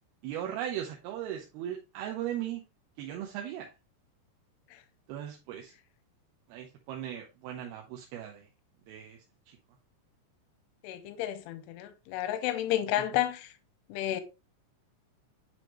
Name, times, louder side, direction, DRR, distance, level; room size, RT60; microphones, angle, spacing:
voice 1, 0.2-2.6 3.0-3.7 5.1-5.7 6.5-8.5 8.9-9.6, right 11 dB, 80° right, 2.4 m, -38 dB
voice 2, 10.8-13.5 13.9-14.2, left 13 dB, 85° left, 2.4 m, -31 dB
9.2 x 3.5 x 3.0 m
omnidirectional pair, 5.1 m